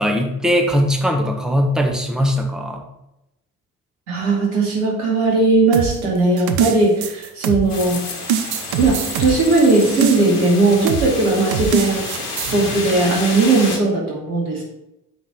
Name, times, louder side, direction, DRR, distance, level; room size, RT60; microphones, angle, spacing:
voice 1, 0.0-2.8, equal, ahead, 2 dB, 1.5 m, -19 dB
voice 2, 4.1-8.1 8.8-12.0 12.5-14.6, right 3 dB, 75° right, -2 dB, 2.5 m, -17 dB
sound 1, 5.7-7.9 8.3-10.5 10.9-11.1 11.5-12.5, right 7 dB, 55° right, 0.9 m, -23 dB
sound 2, 7.7-13.8, left 3 dB, 80° left, 1.3 m, -29 dB
6.3 x 5.7 x 7.1 m, 0.89 s
figure-of-eight pair, 50°, 45 cm